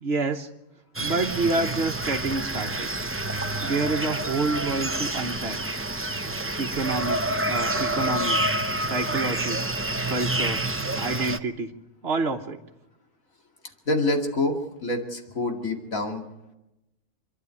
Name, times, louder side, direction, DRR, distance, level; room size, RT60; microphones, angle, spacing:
voice 1, 0.0-0.5 1.0-2.9 3.6-5.6 6.6-8.4 8.8-9.6 10.0-10.7 11.0-11.7 12.0-12.6, right 3 dB, 55° right, 0 dB, 1.4 m, -28 dB
sound 1, 0.9-11.4, right 2 dB, 15° right, 0.5 m, -28 dB
voice 2, 13.9-14.6 14.8-16.2, left 2 dB, 85° left, 3 dB, 2.8 m, -26 dB
26.5 x 11.5 x 9.7 m, 0.94 s
omnidirectional pair, 1.4 m